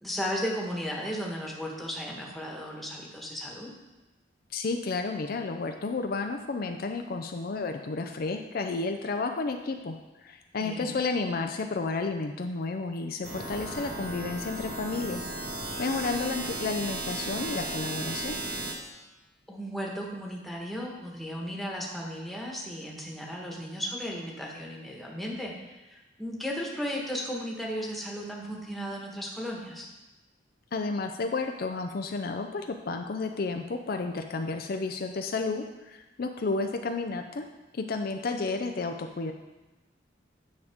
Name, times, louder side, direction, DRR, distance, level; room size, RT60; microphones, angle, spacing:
voice 1, 0.0-3.7 10.6-10.9 19.5-29.9, equal, ahead, -3 dB, 1.3 m, -35 dB
voice 2, 4.5-15.2 15.8-18.4 30.7-37.5 37.7-39.3, left 3 dB, 55° left, 5 dB, 0.5 m, -32 dB
sound 1, 13.2-18.7, right 2 dB, 60° right, 1.4 m, -35 dB
9.5 x 6.4 x 3.6 m, 1.1 s
head